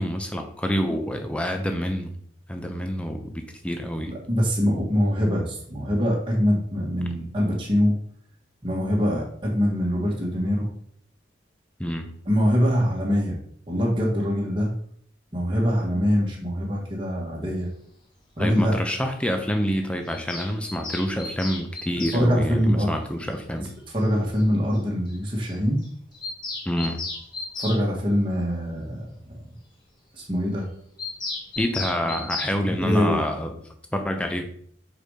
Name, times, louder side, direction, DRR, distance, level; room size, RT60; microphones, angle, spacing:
voice 1, 0.0-2.2 2.5-4.1 7.2-7.3 11.8-12.1 18.4-23.7 26.7-27.1 31.6-33.5 33.9-34.5, equal, 5° left, 5 dB, 0.7 m, -27 dB
voice 2, 4.1-7.9 8.6-10.7 12.3-13.4 13.7-14.7 15.3-17.7 18.4-18.7 22.1-22.9 23.9-25.8 27.6-29.4 30.2-30.7 32.6-33.2, equal, 25° right, -3 dB, 1.5 m, -23 dB
Bird vocalization bird call bird song, 20.1-22.2 23.7-23.8 24.0-24.1 24.3-24.4 24.7-24.8 25.1-25.2 25.4-25.6 25.8-27.8 31.0-32.6, left 3 dB, 25° left, 1.3 m, -34 dB
5.1 x 4.8 x 4.9 m, 0.63 s
head